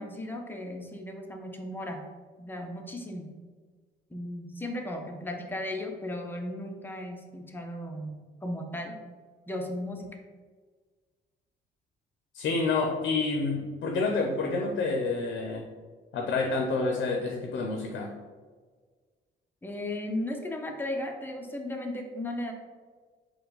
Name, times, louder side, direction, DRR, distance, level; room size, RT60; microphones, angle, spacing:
voice 1, 0.0-2.0 2.4-3.3 4.1-9.0 9.5-10.2 19.6-22.5, left 1 dB, 10° left, 3 dB, 0.6 m, -36 dB
voice 2, 12.3-15.7 16.1-18.1, left 3 dB, 65° left, 2 dB, 0.6 m, -28 dB
4.4 x 2.2 x 3.9 m, 1.5 s
cardioid pair, 90°, 20 cm